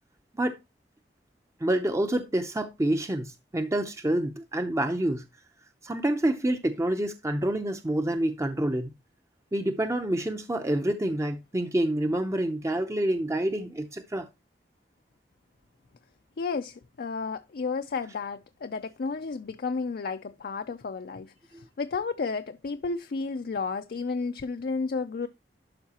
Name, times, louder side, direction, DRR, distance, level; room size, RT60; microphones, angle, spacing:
voice 1, 1.6-5.2 5.8-8.9 9.5-14.3 21.5-21.6, right 1 dB, 15° right, 0.6 m, -27 dB
voice 2, 16.4-25.3, left 4 dB, 60° left, 0.4 m, -32 dB
12.0 x 4.7 x 2.8 m
head